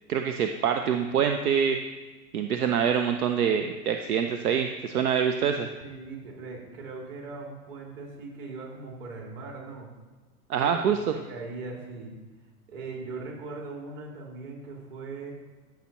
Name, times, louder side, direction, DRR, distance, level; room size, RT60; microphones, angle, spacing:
voice 1, 0.1-1.8 2.3-5.7 10.5-11.0, right 7 dB, 75° right, 6 dB, 0.7 m, -25 dB
voice 2, 5.8-9.9 10.6-12.1 12.7-15.3, right 3 dB, 45° right, -1 dB, 2.7 m, -40 dB
13.0 x 5.8 x 3.0 m, 1.2 s
hypercardioid pair, 110°, 45 cm